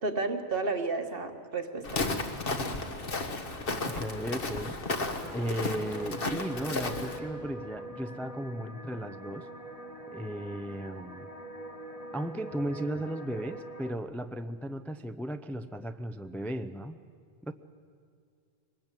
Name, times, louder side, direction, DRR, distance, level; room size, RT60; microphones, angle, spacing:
voice 1, 0.0-2.0, right 3 dB, 55° right, 6 dB, 1.7 m, -32 dB
Walk footsteps, 1.8-7.2, left 3 dB, 55° left, 1.6 m, -33 dB
voice 2, 3.9-4.8 5.3-9.5 10.1-11.3 12.1-17.0 17.4-17.5, right 1 dB, ahead, 8 dB, 0.4 m, -35 dB
sound 1, 5.2-13.9, right 1 dB, 35° left, 1.9 m, -44 dB
23.0 x 20.0 x 9.0 m, 2.2 s
omnidirectional pair, 1.1 m